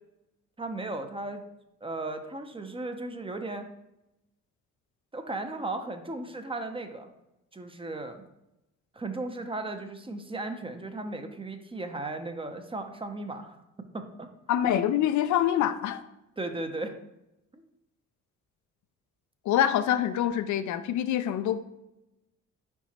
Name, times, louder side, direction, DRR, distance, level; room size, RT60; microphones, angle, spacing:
voice 1, 0.6-1.4 1.8-3.7 5.1-7.1 7.5-8.2 8.9-13.6 13.9-14.3 16.4-16.9 17.5-17.6, right 2 dB, 20° right, 7 dB, 0.6 m, -36 dB
voice 2, 14.5-16.0 19.5-21.6, left 10 dB, 75° left, 10 dB, 0.5 m, -25 dB
4.9 x 4.6 x 4.2 m, 0.90 s
cardioid pair, 90°, 30 cm